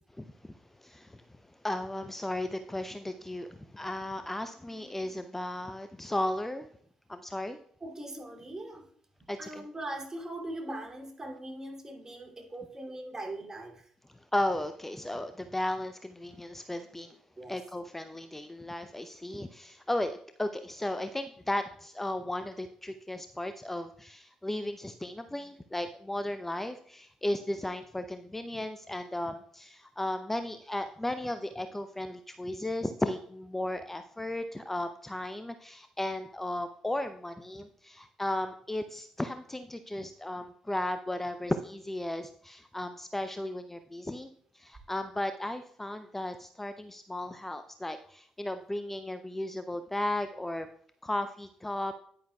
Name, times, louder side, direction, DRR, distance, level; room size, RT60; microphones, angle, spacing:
voice 1, 0.8-1.2 1.6-6.7 7.1-7.6 9.3-9.6 14.3-17.2 17.5-50.7 51.0-51.9, left 1 dB, 10° left, 9 dB, 0.6 m, -35 dB
voice 2, 4.6-5.2 7.8-8.9 9.4-13.9 17.4-17.6, right 1 dB, 25° right, 1 dB, 2.8 m, -41 dB
10.0 x 9.4 x 2.3 m, 0.64 s
hypercardioid pair, 45°, 2 cm